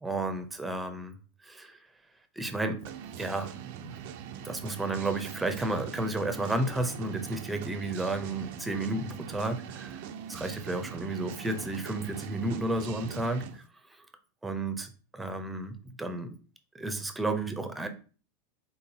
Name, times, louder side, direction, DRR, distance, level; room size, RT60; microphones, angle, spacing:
voice 1, 0.0-1.1 1.4-1.8 2.4-2.8 3.2-3.5 3.8-4.0 4.4-10.0 10.3-13.4 14.4-15.7 16.0-16.3 16.7-17.9, right 2 dB, 10° right, 7 dB, 0.8 m, -32 dB
sound 1, 2.8-13.6, right 9 dB, 60° right, 0.4 m, -42 dB
4.0 x 3.8 x 2.9 m, 0.38 s
hypercardioid pair, 90°, 0 cm